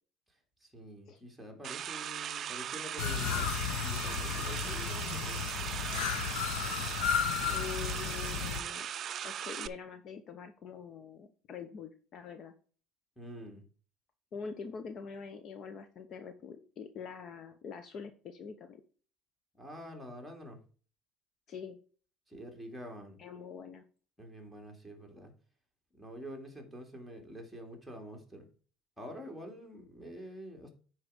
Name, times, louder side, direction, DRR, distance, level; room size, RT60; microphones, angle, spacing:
voice 1, 0.3-5.4 13.2-13.6 19.5-20.6 22.3-23.2 24.2-25.3 25.9-28.4 29.0-30.7, equal, ahead, 0 dB, 2.4 m, -47 dB
sound 1, 1.6-9.7, right 9 dB, 40° right, 0.4 m, -38 dB
sound 2, 3.0-8.6, left 8 dB, 85° left, 1.1 m, -34 dB
voice 2, 7.5-8.9 9.2-12.5 14.3-18.8 21.5-21.8 23.2-23.8, left 6 dB, 45° left, 9 dB, 0.8 m, -44 dB
9.9 x 4.8 x 4.9 m, 0.40 s
cardioid pair, 130°, 0 cm